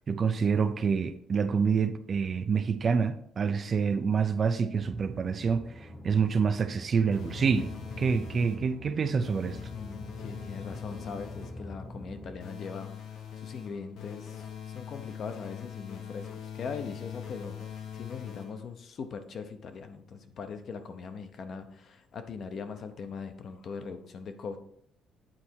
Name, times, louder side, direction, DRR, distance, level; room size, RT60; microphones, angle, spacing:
voice 1, 0.1-7.7 8.0-9.6, right 6 dB, 30° right, 0.4 m, -27 dB
sound 1, 4.8-12.4, left 1 dB, 10° left, 0.9 m, -44 dB
sound 2, 7.1-8.8 9.2-11.7 12.4-18.8, left 8 dB, 70° left, 1.1 m, -42 dB
voice 2, 9.7-14.4 14.7-17.6 17.9-24.6, left 5 dB, 45° left, 0.7 m, -41 dB
8.9 x 4.2 x 4.5 m
cardioid pair, 155°, 0 cm